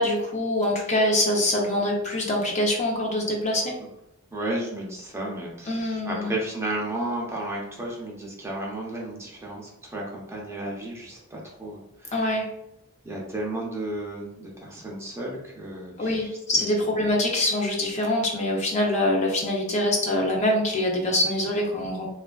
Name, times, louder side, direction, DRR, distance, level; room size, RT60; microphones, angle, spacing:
voice 1, 0.0-3.8 5.7-6.3 12.1-12.5 16.0-22.1, left 1 dB, 30° left, -1 dB, 0.5 m, -24 dB
voice 2, 4.3-12.3 13.0-16.8, right 1 dB, 10° right, -3 dB, 0.6 m, -33 dB
3.2 x 2.4 x 2.2 m, 0.85 s
head